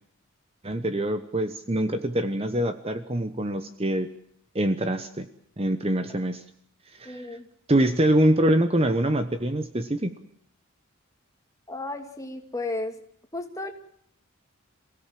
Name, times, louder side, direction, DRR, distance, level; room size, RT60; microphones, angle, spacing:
voice 1, 0.6-4.1 4.5-5.3 5.6-6.4 7.0-7.2 7.7-10.1, right 1 dB, 25° right, 9 dB, 1.0 m, -24 dB
voice 2, 7.0-7.5 11.7-13.0 13.3-13.7, left 2 dB, 15° left, 4 dB, 2.5 m, -33 dB
27.5 x 17.0 x 7.6 m, 0.69 s
head